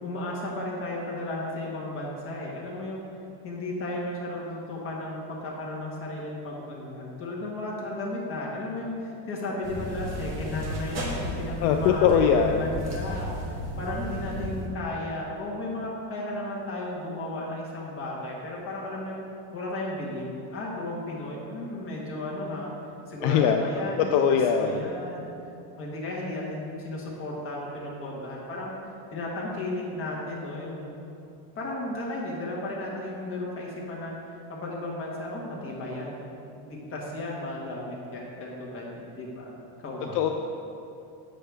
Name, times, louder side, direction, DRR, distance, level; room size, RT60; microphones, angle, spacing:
voice 1, 0.0-3.0 3.4-19.2 19.5-22.7 23.1-24.2 24.5-25.3 25.8-28.7 29.1-31.0 31.5-34.1 34.5-36.2 36.6-39.5 39.8-40.2, left 1 dB, 30° left, -4 dB, 1.5 m, -34 dB
sound 1, 9.6-14.7, equal, 35° right, 1.3 m, -34 dB
voice 2, 11.6-12.6 23.2-23.6 24.1-24.8 40.1-40.3, left 7 dB, 65° left, 4 dB, 0.5 m, -21 dB
7.7 x 6.6 x 3.4 m, 2.7 s
cardioid pair, 165°, 45 cm